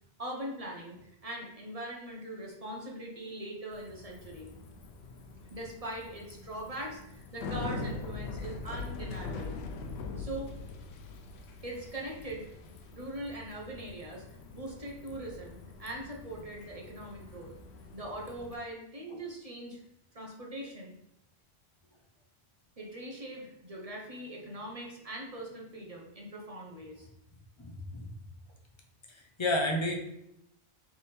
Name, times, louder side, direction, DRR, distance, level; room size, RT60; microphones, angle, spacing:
voice 1, 0.2-4.5 5.5-9.6 10.2-10.5 11.6-12.5 12.9-14.2 14.5-17.5 17.9-19.8 20.1-20.9 22.8-27.1, right 1 dB, 40° right, -1 dB, 0.8 m, -41 dB
Bicycle, 3.7-18.5, left 3 dB, 80° left, 0.9 m, -43 dB
voice 2, 27.6-28.1 29.4-29.9, left 1 dB, 30° left, 1 dB, 0.7 m, -30 dB
3.5 x 3.4 x 4.2 m, 0.83 s
omnidirectional pair, 1.1 m